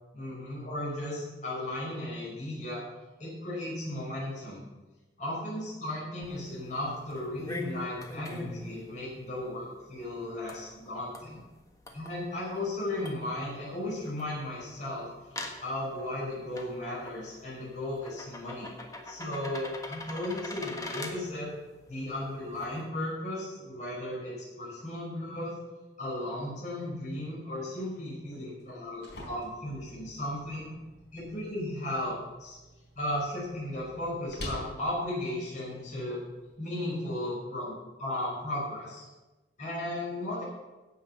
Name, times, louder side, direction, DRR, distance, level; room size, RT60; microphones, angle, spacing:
voice 1, 0.1-2.8 3.2-4.6 5.2-11.4 11.9-15.1 15.6-18.7 19.0-21.5 21.9-25.5 26.0-30.7 31.1-32.1 32.4-32.6 33.0-36.2 36.6-39.1 39.6-40.4, left 1 dB, 45° left, -7 dB, 5.5 m, -35 dB
sound 1, 6.2-22.9, left 2 dB, 20° left, 1.4 m, -45 dB
sound 2, 28.6-36.6, equal, 70° left, 4.4 m, -48 dB
16.5 x 6.1 x 7.1 m, 1.2 s
head